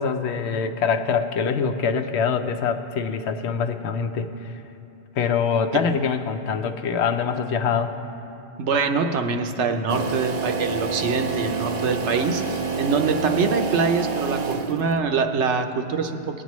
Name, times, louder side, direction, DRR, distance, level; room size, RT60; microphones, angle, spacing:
voice 1, 0.0-4.3 5.2-8.0, left 6 dB, 75° left, 8 dB, 0.9 m, -24 dB
voice 2, 8.6-16.2, right 5 dB, 85° right, 5 dB, 1.0 m, -24 dB
sound 1, 9.9-15.0, right 4 dB, 50° right, 0.5 m, -28 dB
19.0 x 8.7 x 3.1 m, 2.8 s
omnidirectional pair, 1.1 m